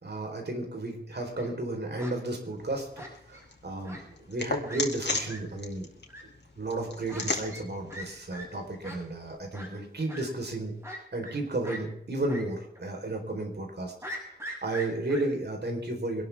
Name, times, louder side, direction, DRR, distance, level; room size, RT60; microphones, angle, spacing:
voice 1, 0.0-5.9 6.6-10.7 11.1-13.9 14.3-16.2, right 2 dB, 65° right, 2 dB, 4.1 m, -33 dB
Fowl, 1.1-1.5 2.0-2.1 3.0-3.4 3.8-4.0 4.3-4.4 4.7-4.8 5.2-5.4 6.1-6.2 7.1-7.2 7.5-7.6 7.9-8.1 8.3-8.4 8.8-9.0 9.5-9.7 10.1-10.2 10.8-11.4 11.6-11.8 12.3-12.4 12.8-12.9 14.0-15.2, equal, 15° right, 7.2 m, -41 dB
sound 1, 2.6-9.4, left 3 dB, 65° left, 2.5 m, -38 dB
24.5 x 12.0 x 3.6 m, 0.73 s
wide cardioid pair, 65°, 19 cm